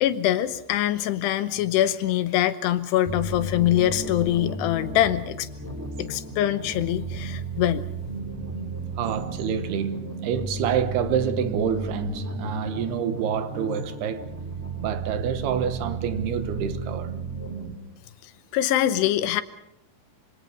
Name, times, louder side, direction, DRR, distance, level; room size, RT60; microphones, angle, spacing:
voice 1, 0.0-5.5 6.0-7.8 18.2-19.4, left 12 dB, 80° left, 3.1 m, -24 dB
sound 1, 3.1-17.7, right 2 dB, 5° right, 2.3 m, -34 dB
voice 2, 9.0-14.3 14.8-17.1, right 8 dB, 75° right, 3.2 m, -27 dB
26.0 x 25.0 x 5.4 m
omnidirectional pair, 4.8 m